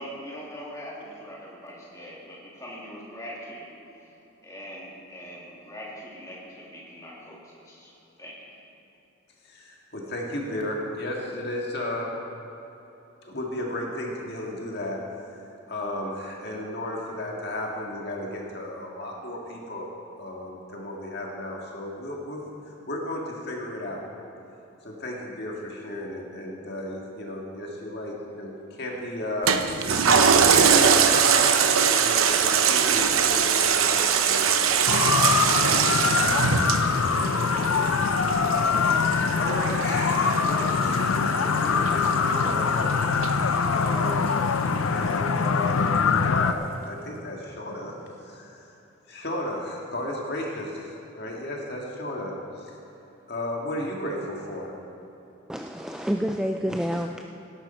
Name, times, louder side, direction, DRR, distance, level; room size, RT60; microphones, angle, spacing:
voice 1, 0.0-3.7 3.9-4.1 4.4-7.9 8.2-8.3, equal, 15° left, -6 dB, 2.9 m, -41 dB
voice 2, 9.5-12.1 13.2-15.0 15.7-19.9 20.2-22.4 22.9-24.0 24.8-29.5 30.4-34.7 35.3-36.8 37.1-37.9 38.2-38.9 39.3-42.9 43.7-44.4 44.8-46.6 46.9-47.9 48.2-48.7 49.1-52.3 53.3-54.7, left 1 dB, 50° left, -1 dB, 1.9 m, -34 dB
Toilet flush, 29.5-44.3 44.8-44.9, right 7 dB, 85° right, 0.8 m, -23 dB
sound 1, 34.9-46.5, left 5 dB, 80° left, 0.5 m, -23 dB
voice 3, 55.5-57.2, equal, 5° right, 3 dB, 0.3 m, -28 dB
17.5 x 11.0 x 4.4 m, 3.0 s
head